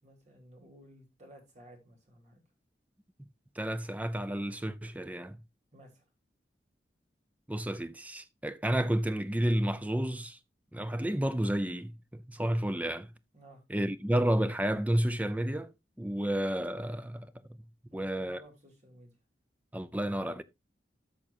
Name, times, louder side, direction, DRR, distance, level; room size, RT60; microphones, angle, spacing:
voice 1, 0.0-2.4 5.7-6.0 13.3-13.6 17.9-19.1, equal, 40° right, 2.8 m, -55 dB
voice 2, 3.6-5.4 7.5-10.4 10.7-13.1 13.7-17.3 17.9-18.4 19.7-20.4, right 1 dB, 10° right, 0.5 m, -31 dB
13.5 x 6.1 x 2.6 m
head